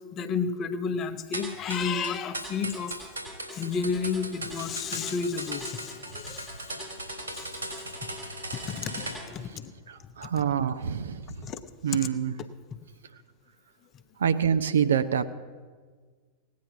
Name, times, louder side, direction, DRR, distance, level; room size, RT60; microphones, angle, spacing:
voice 1, 0.1-2.9 3.5-6.5 7.3-7.5 8.0-8.1 8.7-9.7 10.0-10.5 11.4-11.6 11.9-12.1 12.7-12.8, left 5 dB, 30° left, 9 dB, 0.9 m, -32 dB
sound 1, 1.3-9.1, right 1 dB, 80° right, 3.7 m, -37 dB
voice 2, 9.9-11.2 11.8-12.3 14.2-15.3, right 8 dB, 65° right, 10 dB, 0.6 m, -26 dB
18.0 x 9.5 x 5.9 m, 1.5 s
figure-of-eight pair, 90°, 0 cm